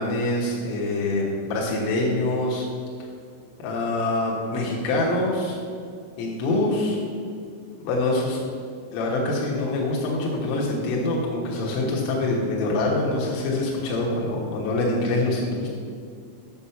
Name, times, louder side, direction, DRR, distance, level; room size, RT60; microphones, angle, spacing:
voice 1, 0.0-2.7 3.6-5.6 6.2-7.0 7.8-8.4 8.9-15.7, left 2 dB, 80° left, -3 dB, 3.9 m, -25 dB
9.9 x 6.9 x 5.7 m, 2.3 s
omnidirectional pair, 5.9 m